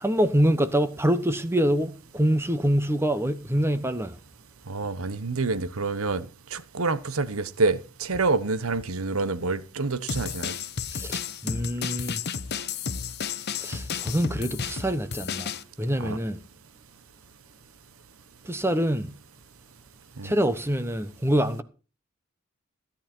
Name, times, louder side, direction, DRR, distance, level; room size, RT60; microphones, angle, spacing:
voice 1, 0.0-4.1 10.9-12.2 13.6-15.5 15.8-16.4 18.4-19.1 20.2-21.6, equal, 10° right, 0.9 m, -25 dB
voice 2, 4.7-6.3 6.5-10.5 16.0-16.2 20.2-20.3, right 3 dB, 75° right, 1.1 m, -27 dB
sound 1, 10.1-15.6, left 6 dB, 50° left, 0.9 m, -32 dB
16.0 x 10.5 x 4.5 m
head